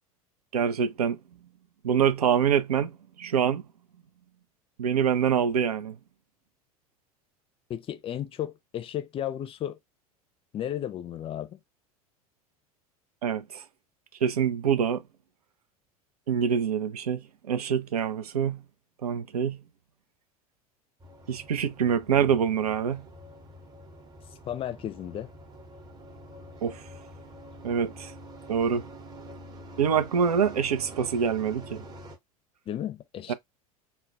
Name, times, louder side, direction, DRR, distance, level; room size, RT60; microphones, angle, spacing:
voice 1, 0.5-1.2 1.8-2.9 3.2-3.6 4.8-6.0 13.2-13.6 14.2-15.0 16.3-17.2 17.5-18.6 19.0-19.6 21.3-23.0 26.6-26.8 27.6-28.1 28.5-28.8 29.8-31.8 33.3-33.4, right 7 dB, 80° right, 0.5 m, -25 dB
voice 2, 7.7-9.8 10.5-11.6 24.5-25.3 32.7-33.3, left 11 dB, 30° left, 0.5 m, -34 dB
sound 1, 21.0-32.2, right 1 dB, 20° right, 0.8 m, -46 dB
2.3 x 2.1 x 3.7 m
figure-of-eight pair, 80°, 19 cm